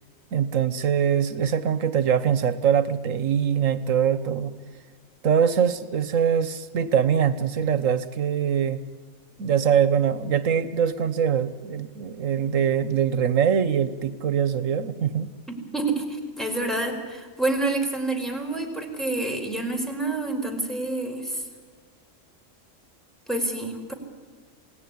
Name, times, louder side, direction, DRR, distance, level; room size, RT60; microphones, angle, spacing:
voice 1, 0.3-4.5 5.2-8.8 9.4-15.3, right 8 dB, 85° right, 13 dB, 1.4 m, -23 dB
voice 2, 15.7-21.4 23.3-23.9, right 2 dB, ahead, 1 dB, 4.6 m, -28 dB
28.0 x 18.0 x 9.7 m, 1.5 s
omnidirectional pair, 1.3 m